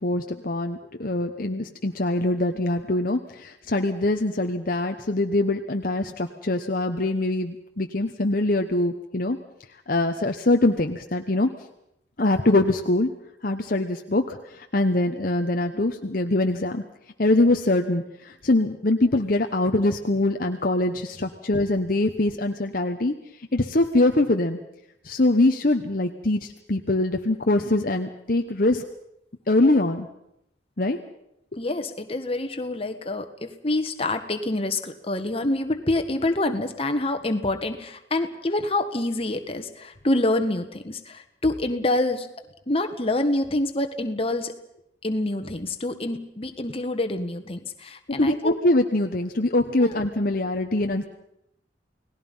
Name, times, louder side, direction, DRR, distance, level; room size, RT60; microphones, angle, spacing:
voice 1, 0.0-9.4 9.9-11.5 12.2-13.1 13.4-16.8 17.2-23.1 23.5-24.6 25.0-28.8 29.5-30.1 30.8-31.0 48.2-51.0, left 2 dB, 50° left, 5 dB, 1.1 m, -23 dB
voice 2, 31.6-42.3 42.7-44.5 45.0-48.6 49.8-50.1, left 2 dB, 30° left, 7 dB, 1.7 m, -26 dB
29.5 x 19.0 x 5.6 m, 0.79 s
head